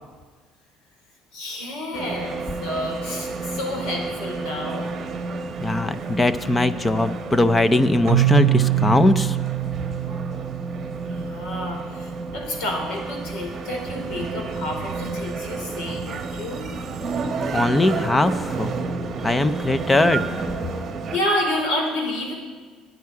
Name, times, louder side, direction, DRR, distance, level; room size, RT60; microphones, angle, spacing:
voice 1, 1.3-4.9 6.3-6.4 11.0-16.7 21.1-22.3, left 1 dB, 80° left, 1 dB, 4.0 m, -29 dB
sound 1, 1.9-21.2, right 3 dB, 30° right, 1.1 m, -30 dB
voice 2, 5.6-9.4 17.5-18.7 19.2-20.2, left 2 dB, 10° left, 13 dB, 0.5 m, -20 dB
Keyboard (musical), 8.1-11.8, right 20 dB, 75° right, 0.7 m, -24 dB
23.5 x 9.4 x 4.8 m, 1.5 s
cardioid pair, 170°, 0 cm